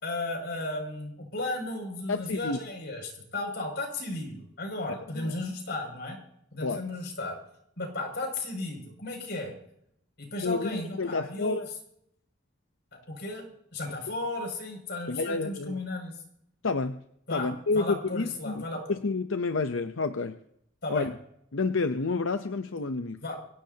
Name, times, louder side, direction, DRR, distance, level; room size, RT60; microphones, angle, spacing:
voice 1, 0.0-6.2 6.5-7.4 7.8-9.5 10.2-11.6 13.1-13.4 13.7-16.1 17.3-18.9 20.8-21.1 23.2-23.4, left 2 dB, 60° left, 2 dB, 6.5 m, -34 dB
voice 2, 2.1-2.6 5.2-5.4 6.6-6.8 10.4-11.7 15.1-15.8 16.6-17.0 17.3-18.6 18.9-20.4 20.9-21.1 21.5-23.2, left 3 dB, 90° left, 8 dB, 0.7 m, -29 dB
24.5 x 17.0 x 2.9 m, 0.72 s
head